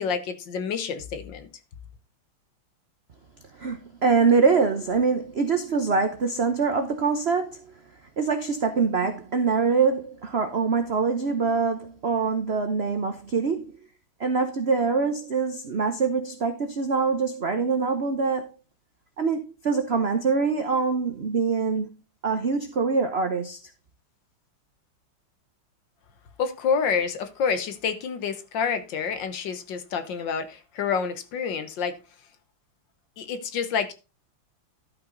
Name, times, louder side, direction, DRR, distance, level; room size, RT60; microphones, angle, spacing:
voice 1, 0.0-1.5 26.4-31.9 33.2-33.9, left 6 dB, 65° left, 1.6 m, -28 dB
voice 2, 3.5-7.7 8.2-13.8 14.2-18.5 19.2-21.9 22.2-23.6, right 5 dB, 75° right, 0.5 m, -24 dB
12.0 x 5.6 x 3.9 m
omnidirectional pair, 2.3 m